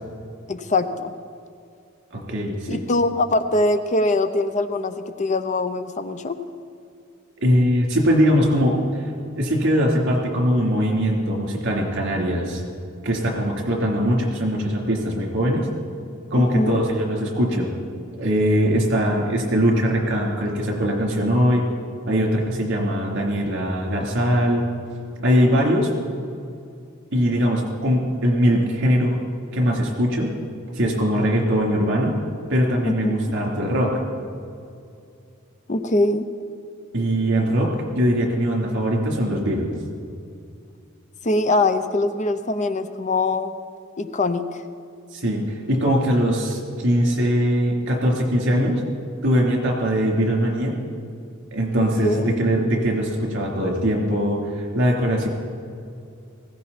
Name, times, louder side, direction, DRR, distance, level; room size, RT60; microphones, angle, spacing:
voice 1, 0.5-1.1 2.7-6.4 16.5-16.8 32.8-33.3 35.7-36.3 41.2-43.5 44.0-44.6 51.8-52.4, left 2 dB, 35° left, 10 dB, 0.7 m, -22 dB
voice 2, 2.1-2.8 7.4-12.6 13.0-15.7 16.3-17.7 18.2-21.6 22.1-24.6 25.2-25.9 27.1-29.2 29.5-30.3 30.7-32.2 32.5-34.0 36.9-39.7 45.1-48.8 49.2-50.7 51.5-55.3, equal, 60° right, 0 dB, 3.3 m, -21 dB
19.5 x 16.5 x 4.2 m, 2.5 s
head